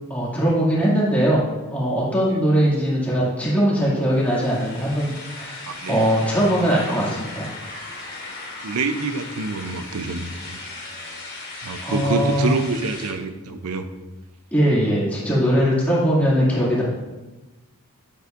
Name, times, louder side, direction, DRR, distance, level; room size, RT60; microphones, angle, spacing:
voice 1, 0.1-7.5 11.8-12.5 14.5-16.8, equal, 5° left, -7 dB, 2.3 m, -20 dB
sound 1, 4.1-13.1, left 2 dB, 40° left, 2.6 m, -37 dB
voice 2, 5.7-6.0 8.6-10.6 11.6-13.9, right 4 dB, 85° right, 8 dB, 0.6 m, -27 dB
9.6 x 7.9 x 2.5 m, 1.1 s
head